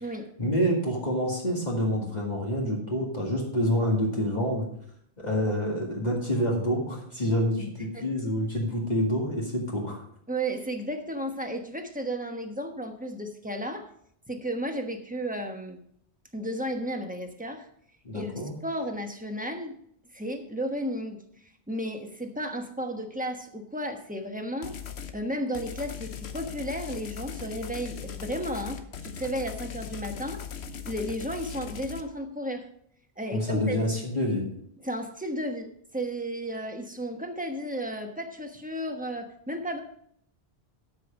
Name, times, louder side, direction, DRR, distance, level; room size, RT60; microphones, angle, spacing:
voice 1, 0.4-4.7 5.2-10.0 18.0-18.5 33.3-34.5, equal, 40° left, -3 dB, 2.3 m, -27 dB
voice 2, 7.6-8.1 10.3-13.9 14.3-15.8 16.3-17.7 18.1-18.3 18.6-19.8 20.1-24.8 25.1-30.4 30.7-32.7 33.2-33.8 34.8-39.8, equal, 10° right, 4 dB, 1.1 m, -33 dB
sound 1, 24.6-25.2 25.5-32.0, left 7 dB, 85° left, 1.1 m, -39 dB
13.0 x 5.7 x 5.1 m, 0.68 s
omnidirectional pair, 1.1 m